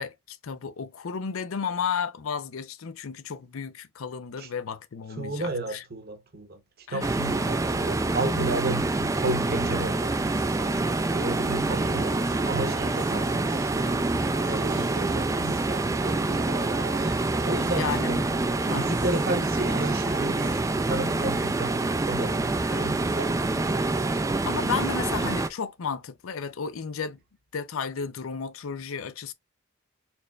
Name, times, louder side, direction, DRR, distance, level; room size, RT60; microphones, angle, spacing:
voice 1, 0.0-5.8 6.9-7.1 17.8-18.1 18.7-18.9 22.7-22.9 24.5-27.2 27.5-29.3, left 6 dB, 85° left, 0.5 m, -33 dB
voice 2, 5.2-6.6 6.9-10.2 11.1-12.1 12.5-13.9 14.4-17.1 17.4-18.2 18.7-24.0, right 2 dB, 50° right, 0.9 m, -33 dB
sound 1, 7.0-25.5, right 2 dB, 15° right, 0.3 m, -26 dB
sound 2, 7.4-20.6, right 2 dB, 80° right, 1.4 m, -43 dB
4.4 x 3.2 x 2.3 m
head